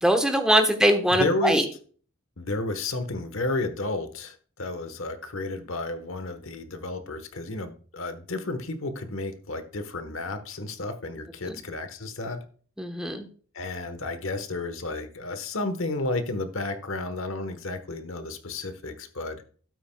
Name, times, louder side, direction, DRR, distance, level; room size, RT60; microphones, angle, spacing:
voice 1, 0.0-1.6 11.4-11.6 12.8-13.2, right 1 dB, 5° right, 5 dB, 1.0 m, -22 dB
voice 2, 1.1-1.7 2.4-12.4 13.5-19.4, left 2 dB, 70° left, 10 dB, 1.2 m, -32 dB
12.5 x 8.9 x 2.3 m, 0.43 s
head